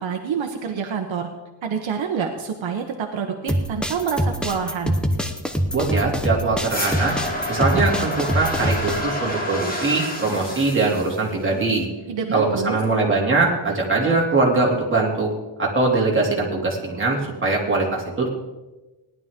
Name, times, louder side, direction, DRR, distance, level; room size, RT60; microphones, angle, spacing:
voice 1, 0.0-1.3 1.6-4.9 12.1-12.8, right 6 dB, 65° right, 4 dB, 1.1 m, -27 dB
sound 1, 3.5-9.0, equal, ahead, 0.8 m, -24 dB
voice 2, 5.7-7.1 7.5-11.9 12.3-15.3 15.6-18.3, right 3 dB, 25° right, -3 dB, 2.8 m, -21 dB
sound 2, 6.7-11.7, left 1 dB, 20° left, 2.8 m, -29 dB
18.0 x 11.0 x 3.7 m, 1.1 s
wide cardioid pair, 160°, 49 cm